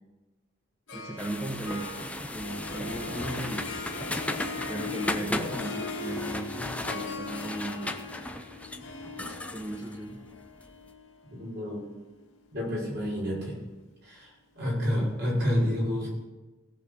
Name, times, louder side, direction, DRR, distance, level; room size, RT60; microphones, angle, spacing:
Harp, 0.9-12.3, left 4 dB, 70° left, 2.1 m, -40 dB
voice 1, 0.9-3.7 4.7-7.9 9.5-10.2, right 1 dB, 15° right, 0 dB, 1.1 m, -36 dB
sound 1, 1.2-10.7, left 1 dB, 5° left, 0.5 m, -36 dB
voice 2, 5.2-5.5 9.2-9.4 11.4-11.8 12.5-13.6 14.0-14.3 14.5-16.1, equal, 55° right, -4 dB, 5.8 m, -29 dB
17.0 x 6.7 x 6.7 m, 1.1 s
head